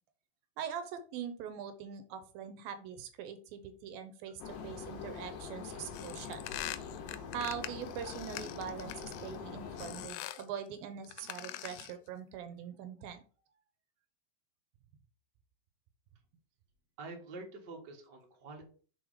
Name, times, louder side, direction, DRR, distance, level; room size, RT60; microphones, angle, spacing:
voice 1, 0.6-6.4 7.3-13.2, right 8 dB, 80° right, 9 dB, 2.4 m, -42 dB
sound 1, 4.4-10.1, left 6 dB, 70° left, 2.6 m, -44 dB
sound 2, 5.9-9.4 9.8-10.5 11.0-12.0, left 14 dB, 90° left, 2.5 m, -44 dB
voice 2, 17.0-18.6, right 3 dB, 55° right, 1 dB, 1.2 m, -47 dB
6.2 x 4.2 x 4.9 m, 0.40 s
omnidirectional pair, 4.4 m